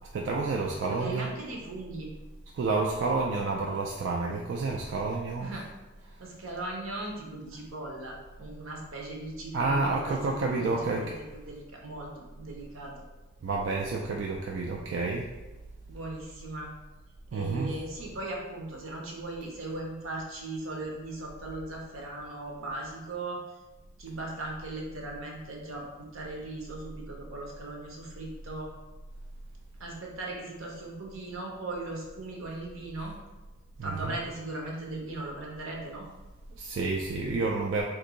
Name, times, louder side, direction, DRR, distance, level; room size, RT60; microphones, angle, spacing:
voice 1, 0.1-1.3 2.5-5.6 9.5-11.2 13.4-15.3 17.3-17.7 33.8-34.1 36.5-37.8, right 3 dB, 60° right, -1 dB, 0.3 m, -29 dB
voice 2, 0.9-2.1 5.4-5.6 6.2-11.1 11.5-12.9 15.9-16.7 17.3-23.4 24.0-28.7 29.8-33.1 33.8-36.1, right 2 dB, 80° right, -1 dB, 0.8 m, -38 dB
2.7 x 2.6 x 3.8 m, 1.2 s
head